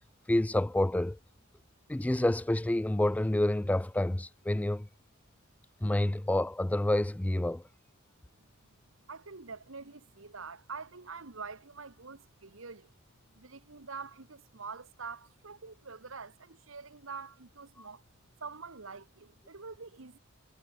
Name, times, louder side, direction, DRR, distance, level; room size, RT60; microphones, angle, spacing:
voice 1, 0.3-1.2 1.9-4.9 5.8-7.6 17.8-17.9, left 1 dB, 5° left, 0.3 m, -28 dB
voice 2, 9.1-12.9 13.3-18.0 18.4-20.2, right 4 dB, 70° right, 1.5 m, -45 dB
head